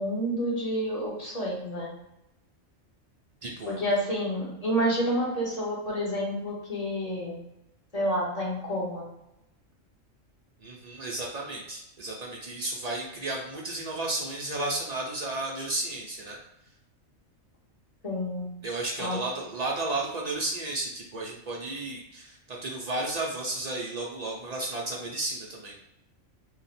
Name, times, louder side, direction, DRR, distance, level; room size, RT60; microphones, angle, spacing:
voice 1, 0.0-1.9 3.7-7.4 7.9-9.1 18.0-18.5 19.0-19.2, equal, 35° left, -4 dB, 0.9 m, -29 dB
voice 2, 3.4-3.8 10.6-16.4 18.6-25.7, right 2 dB, 60° right, -2 dB, 0.4 m, -33 dB
2.8 x 2.2 x 4.1 m, 0.88 s
omnidirectional pair, 1.3 m